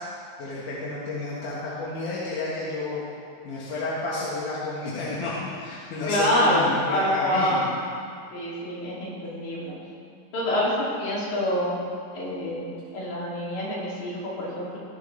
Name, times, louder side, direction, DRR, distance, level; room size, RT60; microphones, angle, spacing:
voice 1, 0.4-3.0 3.4-7.7, left 2 dB, 90° left, -7 dB, 3.0 m, -31 dB
voice 2, 6.1-7.7 8.3-9.8 10.3-11.8 12.1-14.8, left 1 dB, 70° left, -6 dB, 4.1 m, -26 dB
17.5 x 10.5 x 3.3 m, 2.2 s
omnidirectional pair, 3.5 m